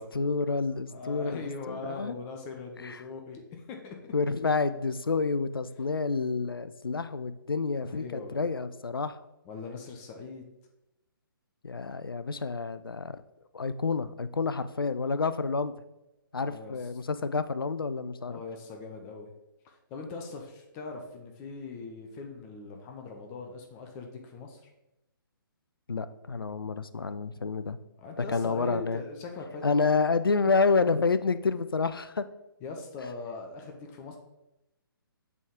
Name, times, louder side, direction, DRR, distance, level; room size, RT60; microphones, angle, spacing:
voice 1, 0.1-2.1 2.8-3.0 4.1-9.2 11.6-13.2 13.5-15.7 16.3-18.4 25.9-27.8 28.2-29.0 29.6-32.2, left 4 dB, 75° left, 13 dB, 0.4 m, -29 dB
voice 2, 0.9-4.1 7.9-8.4 9.5-10.4 16.4-16.8 18.3-19.3 19.6-24.7 28.0-29.9 32.6-34.2, left 3 dB, 20° left, 3 dB, 0.6 m, -41 dB
8.2 x 3.6 x 3.6 m, 0.93 s
figure-of-eight pair, 130°, 12 cm